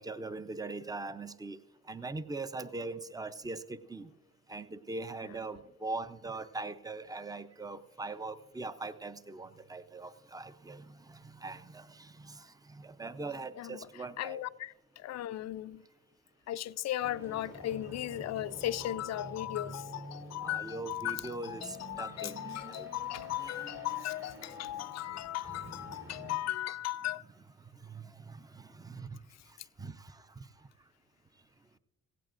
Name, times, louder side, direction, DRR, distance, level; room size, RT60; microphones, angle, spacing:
voice 1, 0.0-1.6 1.9-4.1 4.5-14.4 20.4-22.9 23.4-23.6 25.4-25.6 27.6-29.2 29.8-30.3, right 3 dB, 10° right, 0.6 m, -41 dB
voice 2, 14.2-15.8 16.5-27.2, left 13 dB, 60° left, 0.5 m, -37 dB
sound 1, 17.0-26.4, right 2 dB, 50° right, 2.9 m, -49 dB
17.0 x 16.0 x 2.5 m
cardioid pair, 90°, 30 cm